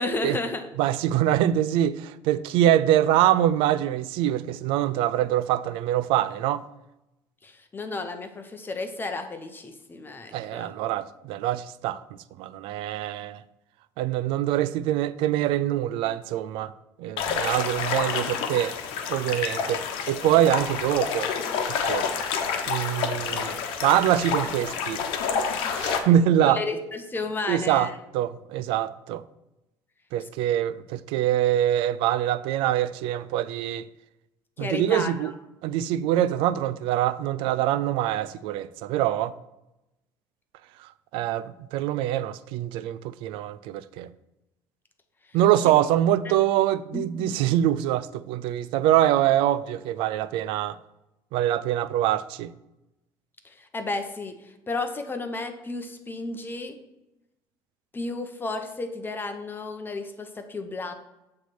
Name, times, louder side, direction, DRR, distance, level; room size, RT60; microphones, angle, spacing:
voice 1, 0.0-0.6 7.4-10.7 26.4-27.9 34.6-35.3 45.6-45.7 46.2-46.3 46.9-47.4 53.4-56.8 57.9-60.9, left 3 dB, 25° left, 0.8 m, -32 dB
voice 2, 0.8-6.6 10.3-12.0 12.4-13.4 14.0-16.7 17.0-18.7 19.1-21.3 21.7-22.1 22.7-25.0 25.8-26.6 27.5-29.2 30.1-33.9 34.6-35.3 35.6-39.3 40.8-44.1 45.3-50.8 51.3-52.5, right 12 dB, 80° right, 0.4 m, -24 dB
sound 1, 17.2-26.0, left 6 dB, 80° left, 1.0 m, -28 dB
8.2 x 3.3 x 6.0 m
cardioid pair, 100°, 9 cm